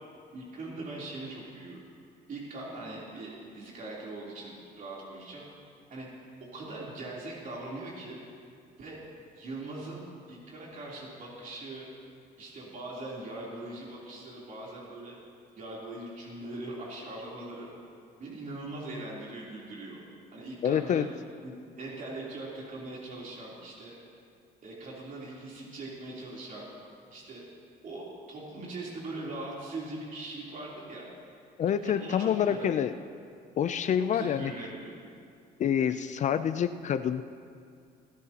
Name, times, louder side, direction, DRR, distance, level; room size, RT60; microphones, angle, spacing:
voice 1, 0.3-1.8 2.3-5.4 5.9-6.1 6.5-8.2 8.8-9.0 9.4-11.9 12.4-15.2 15.6-17.7 18.2-20.0 20.3-21.1 21.4-24.0 24.6-26.7 27.1-27.4 27.8-31.0 31.8-32.7 34.0-35.0, right 2 dB, 50° right, -5 dB, 3.5 m, -41 dB
voice 2, 20.6-21.1 31.6-32.9 33.6-34.5 35.6-37.2, left 9 dB, 45° left, 11 dB, 0.5 m, -27 dB
25.5 x 12.0 x 2.9 m, 2.3 s
cardioid pair, 110°, 17 cm